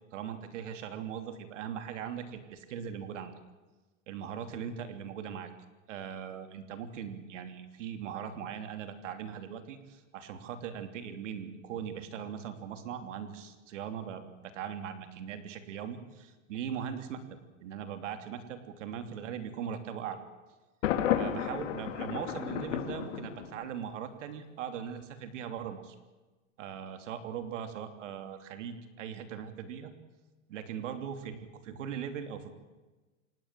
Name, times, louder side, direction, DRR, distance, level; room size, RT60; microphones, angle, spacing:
voice 1, 0.1-3.3 4.1-5.5 5.9-17.2 17.6-20.2 21.1-25.9 26.6-29.9 30.5-32.5, right 8 dB, 65° right, 8 dB, 3.2 m, -40 dB
Thunder, 20.8-23.8, left 10 dB, 70° left, 3.1 m, -32 dB
26.0 x 20.5 x 7.6 m, 1.2 s
supercardioid pair, 160°, 39 cm